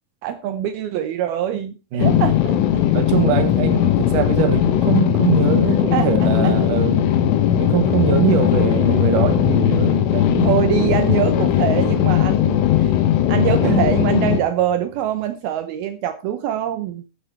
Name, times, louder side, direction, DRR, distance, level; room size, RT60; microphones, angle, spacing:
voice 1, 0.2-2.8 5.9-6.6 10.4-13.0 13.3-17.0, right 11 dB, 85° right, 2.2 m, -24 dB
voice 2, 1.9-2.2 2.9-7.1 7.6-10.7 13.6-13.8, right 8 dB, 65° right, 2.1 m, -22 dB
sound 1, 2.0-14.4, left 11 dB, 75° left, 3.7 m, -18 dB
14.0 x 8.5 x 4.6 m
omnidirectional pair, 5.8 m